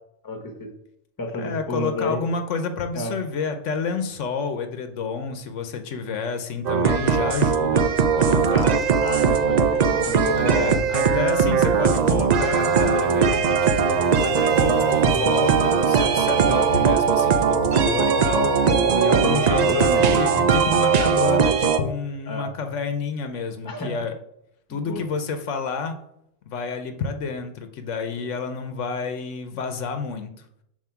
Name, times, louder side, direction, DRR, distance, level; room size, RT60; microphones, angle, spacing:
voice 1, 0.2-0.7 1.2-2.2 2.9-3.1 8.7-10.7 18.9-20.4 22.3-22.5 23.6-23.9 24.8-25.0, left 1 dB, 20° left, 4 dB, 0.9 m, -30 dB
voice 2, 1.4-7.9 8.2-8.8 10.4-18.5 19.0-24.1 24.7-26.0 26.5-30.3, left 5 dB, 80° left, 8 dB, 1.0 m, -29 dB
sound 1, 6.7-21.8, right 6 dB, 65° right, 0.4 m, -20 dB
sound 2, 8.3-18.7, right 3 dB, 85° right, 1.2 m, -40 dB
7.3 x 2.7 x 5.7 m, 0.75 s
omnidirectional pair, 1.3 m